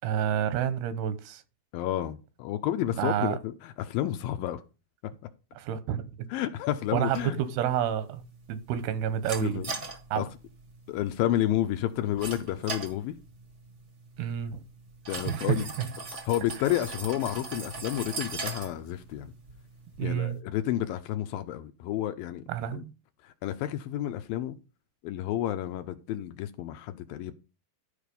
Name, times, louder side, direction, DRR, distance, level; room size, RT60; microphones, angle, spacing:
voice 1, 0.0-1.4 3.0-3.4 5.6-6.3 6.9-8.2 8.5-9.6 10.1-10.2 14.2-14.6 15.3-15.9 20.0-20.4 22.5-22.9, right 10 dB, 90° right, 3.0 m, -29 dB
voice 2, 1.7-4.6 6.3-7.4 9.4-9.7 10.2-10.3 10.9-13.2 15.1-15.7 16.3-19.3 20.0-22.4 22.7-22.8 23.2-24.6 25.0-27.3, left 13 dB, 80° left, 2.3 m, -30 dB
sound 1, 7.1-20.4, right 3 dB, 65° right, 0.7 m, -41 dB
12.5 x 4.9 x 5.3 m
omnidirectional pair, 4.5 m